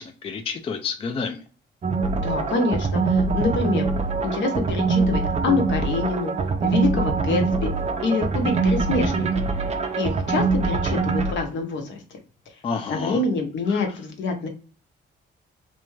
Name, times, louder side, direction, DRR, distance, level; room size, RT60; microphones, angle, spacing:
voice 1, 0.0-1.4 12.6-13.2 13.7-14.0, left 5 dB, 30° left, 6 dB, 0.3 m, -30 dB
sound 1, 1.8-11.3, right 4 dB, 35° right, 0.4 m, -24 dB
voice 2, 2.2-3.9 4.2-6.3 6.6-7.7 8.0-9.4 10.0-12.2 12.9-14.5, left 3 dB, 70° left, 4 dB, 0.8 m, -26 dB
2.6 x 2.2 x 3.1 m, 0.35 s
cardioid pair, 90°, 20 cm